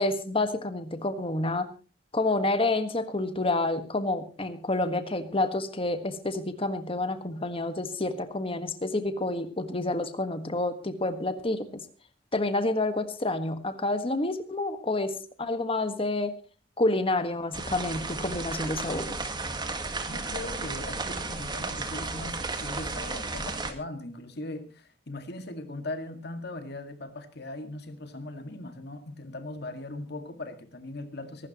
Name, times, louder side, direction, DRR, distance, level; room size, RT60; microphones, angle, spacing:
voice 1, 0.0-1.7 2.1-11.8 12.3-16.3 16.8-19.2, left 2 dB, 30° left, 9 dB, 1.6 m, -29 dB
sound 1, 17.5-23.7, right 3 dB, 25° right, 1.8 m, -34 dB
voice 2, 20.1-31.5, left 2 dB, 60° left, 7 dB, 2.1 m, -39 dB
24.5 x 12.5 x 3.0 m, 0.34 s
head